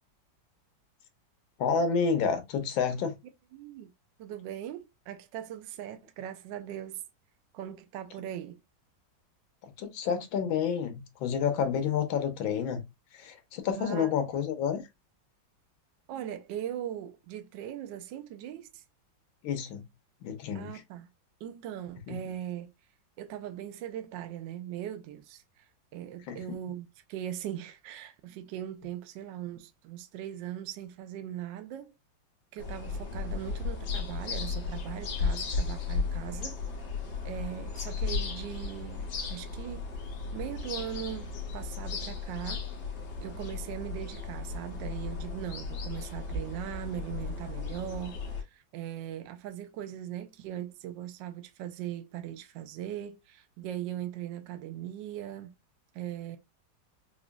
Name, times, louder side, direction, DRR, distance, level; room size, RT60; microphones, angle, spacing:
voice 1, 1.6-3.2 9.6-12.8 13.1-14.8 19.4-19.8 20.2-20.7 22.1-22.2 26.3-26.4, left 6 dB, 85° left, 1.6 m, -29 dB
voice 2, 3.5-3.9 4.2-7.0 7.5-8.6 13.8-14.1 16.1-18.8 20.5-21.1 21.4-22.7 23.2-31.9 32.5-36.6 37.2-39.9 40.3-42.7 43.2-55.5 55.9-56.4, right 11 dB, 75° right, 1.2 m, -40 dB
sound 1, 32.6-48.4, left 4 dB, 65° left, 1.6 m, -35 dB
4.9 x 2.5 x 2.2 m
omnidirectional pair, 2.1 m